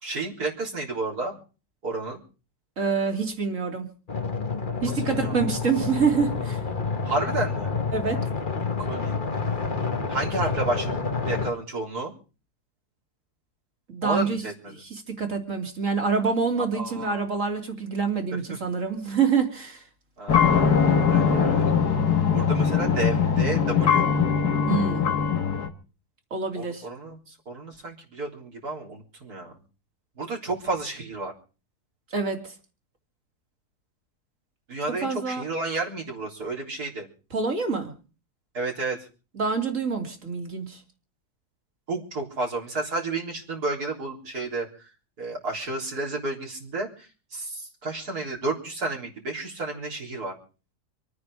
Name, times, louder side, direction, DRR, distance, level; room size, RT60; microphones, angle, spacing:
voice 1, 0.0-1.4 1.8-2.2 4.8-5.3 7.0-7.7 8.8-9.2 10.1-10.9 11.3-12.1 14.0-14.7 16.7-17.2 18.3-18.6 20.2-20.6 21.0-21.6 22.3-24.1 26.5-29.5 30.2-31.3 34.7-37.1 38.5-39.0 41.9-44.7 45.2-50.3, right 2 dB, 75° right, -2 dB, 4.3 m, -31 dB
voice 2, 2.8-3.9 4.8-6.6 7.9-8.3 13.9-14.4 14.7-19.8 24.7-25.0 26.3-26.9 32.1-32.5 35.0-35.4 37.3-37.9 39.3-40.8, right 5 dB, 55° right, 3 dB, 3.3 m, -26 dB
sound 1, 4.1-11.5, left 4 dB, 35° left, 1.5 m, -28 dB
sound 2, 20.3-25.7, left 6 dB, 80° left, 2.1 m, -21 dB
26.5 x 9.6 x 4.9 m, 0.36 s
omnidirectional pair, 1.6 m